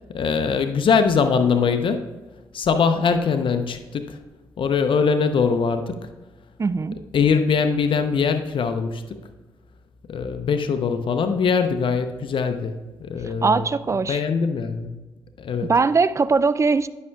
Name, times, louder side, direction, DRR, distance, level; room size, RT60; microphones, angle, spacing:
voice 1, 0.1-2.1 2.5-4.2 4.6-6.1 7.1-9.2 10.1-15.0 15.4-15.7, left 5 dB, 60° left, 8 dB, 0.7 m, -22 dB
voice 2, 6.6-7.0 13.4-14.2 15.6-16.9, right 4 dB, 30° right, 16 dB, 0.4 m, -20 dB
10.5 x 6.4 x 2.3 m, 1.2 s
hypercardioid pair, 45°, 10 cm